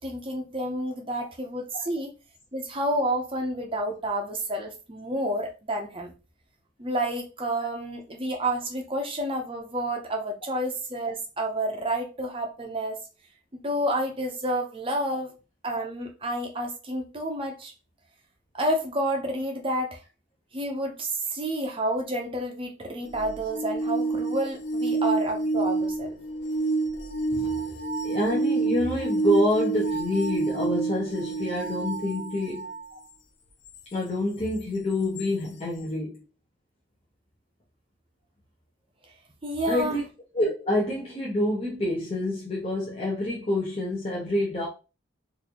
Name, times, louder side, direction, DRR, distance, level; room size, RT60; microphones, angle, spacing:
voice 1, 0.0-2.1 2.5-6.1 6.8-13.0 13.5-15.3 15.6-17.7 18.5-20.0 20.5-26.2 39.4-40.0, right 1 dB, 25° right, 0.6 m, -29 dB
sound 1, 23.1-32.8 35.2-35.3, right 3 dB, 60° left, 0.6 m, -28 dB
voice 2, 28.0-32.7 33.9-36.2 39.6-40.0 40.3-44.7, left 1 dB, 30° left, 0.8 m, -27 dB
4.0 x 2.6 x 2.9 m
head